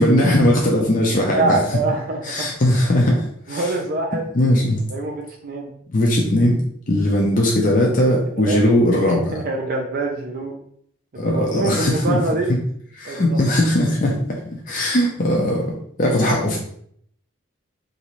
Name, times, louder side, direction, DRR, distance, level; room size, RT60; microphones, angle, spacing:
voice 1, 0.0-1.6 2.2-3.2 3.5-3.7 4.3-4.8 5.9-6.6 6.9-9.3 11.2-12.2 13.0-14.2 14.7-15.6 16.0-16.6, left 1 dB, 40° left, -2 dB, 0.5 m, -18 dB
voice 2, 1.3-2.5 3.5-4.3 4.9-5.7 8.1-8.8 9.1-10.5 11.1-12.5 13.0-13.5 16.2-16.4, right 3 dB, 45° right, 1 dB, 0.4 m, -25 dB
3.0 x 2.7 x 3.0 m, 0.65 s
head